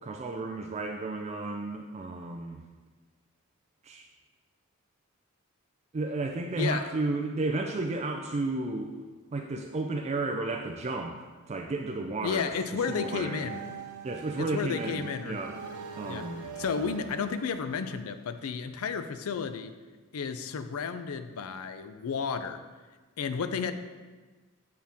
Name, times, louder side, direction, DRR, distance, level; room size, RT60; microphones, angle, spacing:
voice 1, 0.0-2.6 3.8-4.1 5.9-8.9 9.3-11.2 11.5-12.5 12.9-13.5 14.0-15.6 16.0-16.5, right 2 dB, 30° right, 3 dB, 0.3 m, -32 dB
voice 2, 6.6-6.9 12.2-13.7 14.4-15.4 16.0-16.3 16.6-19.7 20.1-22.6 23.2-23.7, left 6 dB, 75° left, 10 dB, 0.4 m, -32 dB
sound 1, 12.8-18.6, right 7 dB, 85° right, 0.6 m, -43 dB
7.4 x 4.5 x 3.5 m, 1.3 s
head